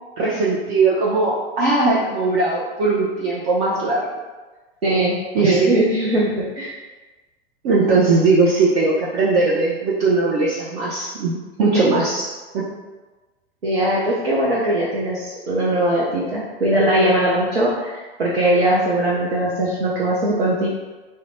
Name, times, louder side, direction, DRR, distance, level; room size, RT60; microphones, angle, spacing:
voice 1, 0.2-4.0 5.3-5.8 7.6-12.2 12.5-12.6, right 3 dB, 40° right, -5 dB, 0.6 m, -19 dB
voice 2, 4.8-5.2 5.4-6.7 11.6-11.9 13.6-20.7, right 1 dB, 85° right, -6 dB, 0.7 m, -20 dB
3.6 x 2.2 x 3.0 m, 1.2 s
figure-of-eight pair, 95°, 30 cm